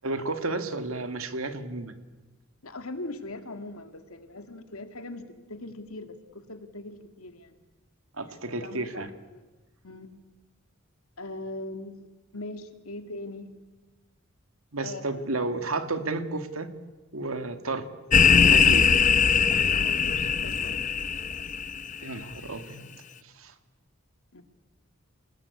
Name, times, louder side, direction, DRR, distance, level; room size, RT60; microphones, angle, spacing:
voice 1, 0.0-2.0 8.2-9.1 14.7-16.7 17.1-17.9 18.4-18.9 22.0-22.8 23.2-23.5, right 2 dB, 75° right, 9 dB, 2.2 m, -32 dB
voice 2, 2.6-7.6 8.3-9.1 9.3-9.4 9.8-10.2 11.2-12.1 12.3-13.6 14.8-15.2 19.6-20.8 24.3-24.4, left 2 dB, 90° left, 8 dB, 2.4 m, -40 dB
sound 1, 18.1-22.0, left 6 dB, 35° left, 0.8 m, -21 dB
30.0 x 20.0 x 8.5 m, 1.2 s
head